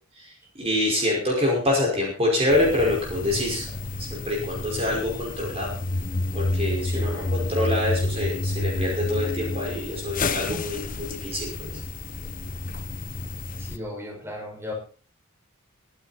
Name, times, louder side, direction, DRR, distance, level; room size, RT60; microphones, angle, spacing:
voice 1, 0.1-3.7 4.0-5.7 6.3-11.8, left 1 dB, 30° right, -2 dB, 5.5 m, -26 dB
sound 1, 2.5-13.8, left 2 dB, 40° left, 0.9 m, -30 dB
voice 2, 6.9-7.3 13.6-14.7, left 1 dB, 10° right, -2 dB, 6.4 m, -36 dB
23.5 x 10.0 x 4.4 m, 0.41 s
head